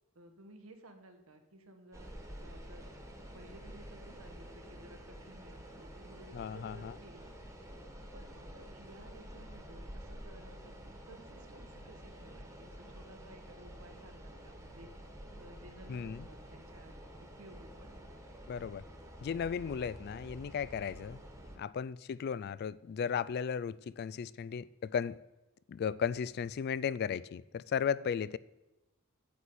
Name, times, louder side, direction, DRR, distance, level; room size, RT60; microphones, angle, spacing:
voice 1, 0.1-2.9 3.3-7.5 8.1-14.9 15.3-18.1 21.5-21.7, right 1 dB, 90° right, 1.3 m, -56 dB
sound 1, 1.9-21.6, equal, 15° right, 1.3 m, -49 dB
voice 2, 6.3-6.9 15.9-16.3 18.5-18.8 19.2-21.2 21.6-25.2 25.7-28.4, left 7 dB, 50° left, 0.3 m, -35 dB
9.2 x 8.3 x 4.2 m
head